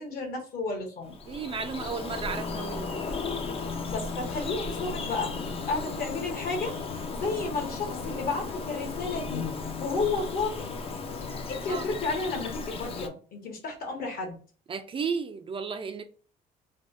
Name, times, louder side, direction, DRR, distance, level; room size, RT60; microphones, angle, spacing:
voice 1, 0.0-1.1 3.9-9.5 9.8-10.7 11.5-14.4, left 3 dB, 60° left, 1.3 m, -32 dB
Bird vocalization bird call bird song, 1.0-13.1, left 4 dB, 35° left, 0.5 m, -35 dB
voice 2, 1.3-3.0 11.7-11.8 14.7-16.0, right 5 dB, 30° right, 0.4 m, -34 dB
3.4 x 2.2 x 2.5 m
cardioid pair, 110°, 17 cm